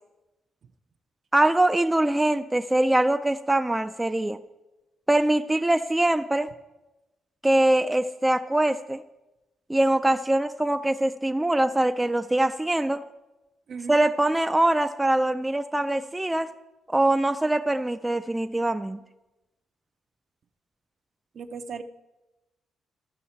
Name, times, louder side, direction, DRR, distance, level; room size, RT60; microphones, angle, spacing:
voice 1, 1.3-4.4 5.1-6.5 7.4-9.0 9.7-13.1 13.9-16.5 16.9-19.0, right 1 dB, 10° right, 9 dB, 0.3 m, -23 dB
voice 2, 21.4-21.8, right 5 dB, 55° right, 10 dB, 0.6 m, -36 dB
14.0 x 5.6 x 4.3 m, 1.0 s
cardioid pair, 90°, 0 cm